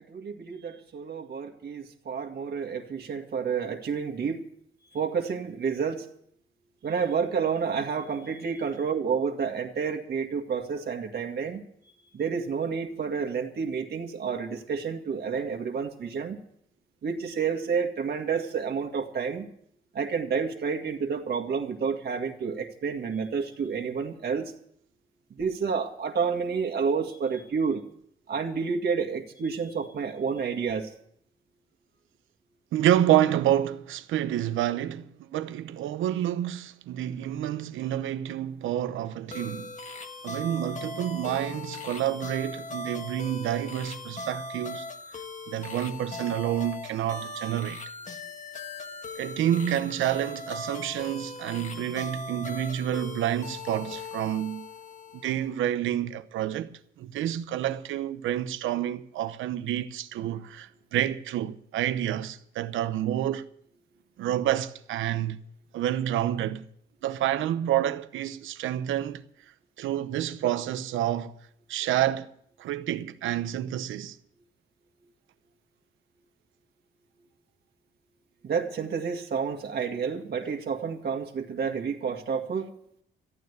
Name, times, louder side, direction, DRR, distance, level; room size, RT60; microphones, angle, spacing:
voice 1, 0.0-4.4 4.9-6.1 6.8-11.6 12.1-16.4 17.0-19.5 19.9-24.5 25.3-27.8 28.3-30.9 78.4-82.7, right 6 dB, 55° right, 1.9 m, -30 dB
voice 2, 32.7-39.7 40.2-44.9 45.5-47.8 49.2-54.7 55.2-63.5 64.2-65.4 65.7-66.6 67.0-69.2 69.8-71.4 71.7-72.3 72.6-74.2, right 11 dB, 80° right, 0.9 m, -28 dB
sound 1, 39.3-55.5, left 3 dB, 35° left, 1.6 m, -39 dB
14.0 x 9.5 x 8.2 m
cardioid pair, 90°, 20 cm